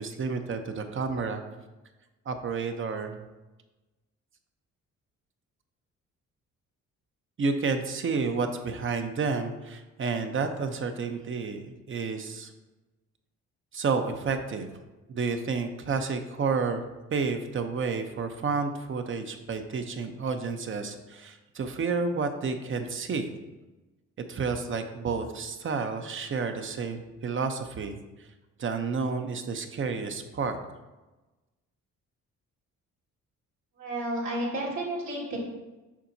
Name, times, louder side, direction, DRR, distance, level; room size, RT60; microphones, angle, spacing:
voice 1, 0.0-1.4 2.3-3.2 7.4-12.5 13.7-14.7 15.1-16.8 17.1-23.3 24.3-28.0 28.6-30.6, right 4 dB, 40° right, 7 dB, 0.8 m, -30 dB
voice 2, 33.8-35.4, right 1 dB, 65° right, -7 dB, 2.1 m, -31 dB
7.3 x 5.6 x 2.7 m, 1.1 s
cardioid pair, 90°, 30 cm